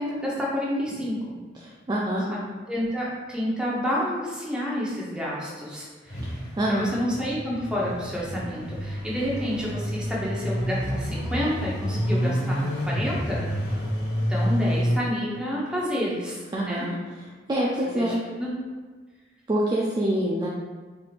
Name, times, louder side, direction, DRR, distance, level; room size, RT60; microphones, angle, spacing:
voice 1, 0.0-1.4 2.3-6.4 6.7-13.5 14.3-16.9 17.9-18.5, equal, 5° right, -6 dB, 0.7 m, -29 dB
voice 2, 1.6-2.2 6.6-6.9 16.5-16.9 17.5-18.2 19.5-20.5, right 1 dB, 25° right, -4 dB, 0.3 m, -25 dB
sound 1, 6.1-14.9, equal, 80° left, 1.4 m, -29 dB
4.5 x 3.3 x 2.4 m, 1.4 s
head